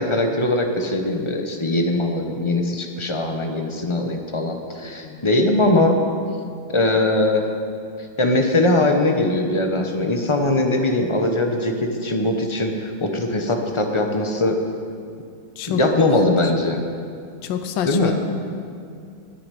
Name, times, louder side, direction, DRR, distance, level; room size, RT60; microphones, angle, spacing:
voice 1, 0.0-6.0 6.7-7.4 8.2-14.6 15.7-16.8 17.8-18.2, left 2 dB, 30° left, 3 dB, 0.5 m, -21 dB
voice 2, 4.8-5.2 15.6-15.8 17.4-18.2, left 9 dB, 75° left, 8 dB, 1.4 m, -27 dB
9.8 x 9.4 x 9.8 m, 2.4 s
omnidirectional pair, 2.2 m